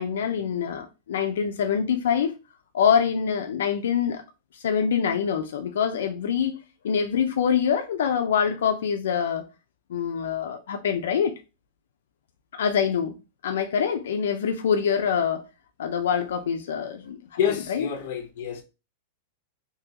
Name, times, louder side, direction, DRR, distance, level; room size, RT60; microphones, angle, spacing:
voice 1, 0.0-2.4 2.7-4.2 4.6-6.6 6.8-9.4 9.9-11.3 12.5-13.2 13.4-15.4 15.8-17.2 17.7-17.9, left 7 dB, 80° left, 0.5 m, -25 dB
voice 2, 17.4-18.6, left 8 dB, 45° left, 0.9 m, -28 dB
3.8 x 2.9 x 2.8 m
supercardioid pair, 180°, 0 cm